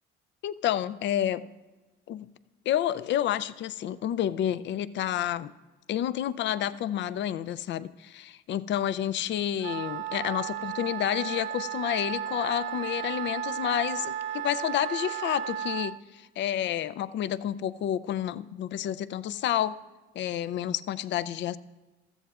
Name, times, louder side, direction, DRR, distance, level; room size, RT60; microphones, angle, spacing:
voice 1, 0.4-1.4 2.1-2.3 2.7-5.5 5.9-19.8 20.1-21.6, left 11 dB, 65° left, 16 dB, 0.4 m, -29 dB
Wind instrument woodwind instrument, 9.6-16.0, right 11 dB, 75° right, 0.5 m, -34 dB
15.0 x 13.5 x 2.4 m, 1.2 s
cardioid pair, 90°, 20 cm